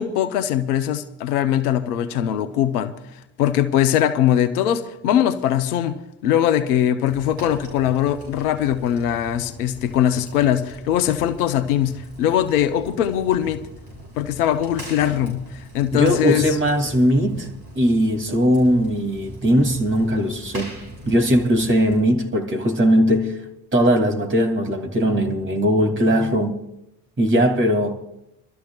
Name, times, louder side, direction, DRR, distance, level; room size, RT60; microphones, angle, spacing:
voice 1, 0.0-2.9 3.4-6.0 6.2-13.6 14.2-16.6, left 10 dB, 75° left, 0.8 m, -21 dB
Fire, 7.1-22.0, equal, 55° right, 7.1 m, -41 dB
voice 2, 15.9-17.5 17.7-20.7 21.1-23.4 23.7-26.6 27.2-28.0, equal, 25° right, 2.6 m, -19 dB
28.5 x 13.0 x 2.3 m
figure-of-eight pair, 55°, 45 cm